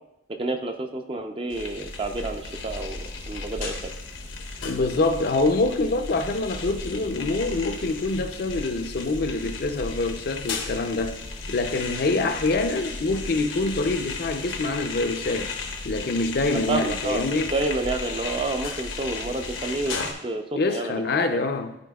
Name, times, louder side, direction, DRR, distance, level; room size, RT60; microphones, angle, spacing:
voice 1, 0.4-3.7 16.5-21.0 21.3-21.4, right 2 dB, 30° right, 5 dB, 0.5 m, -29 dB
sound 1, 1.5-20.1, left 3 dB, 85° left, 0.9 m, -35 dB
voice 2, 4.6-11.2 11.5-15.5 15.8-17.5 20.5-21.8, left 3 dB, 55° left, 7 dB, 0.5 m, -25 dB
12.5 x 4.3 x 2.3 m, 0.90 s
head